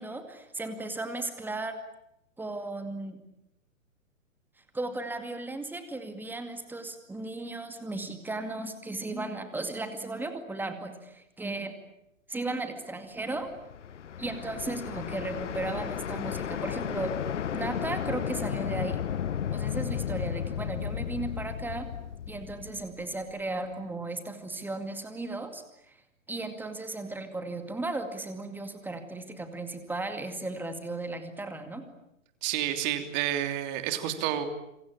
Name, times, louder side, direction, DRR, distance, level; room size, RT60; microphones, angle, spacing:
voice 1, 0.0-1.8 2.4-3.2 4.7-11.7 12.3-13.5 14.2-17.1 17.5-19.0 19.5-21.9 22.3-26.0 26.3-31.9, right 2 dB, 5° right, 8 dB, 2.2 m, -35 dB
sound 1, 13.4-23.4, left 9 dB, 60° left, 1.0 m, -34 dB
voice 2, 32.4-34.5, right 11 dB, 35° right, 8 dB, 3.2 m, -29 dB
27.0 x 24.5 x 8.8 m, 0.83 s
figure-of-eight pair, 120°, 40 cm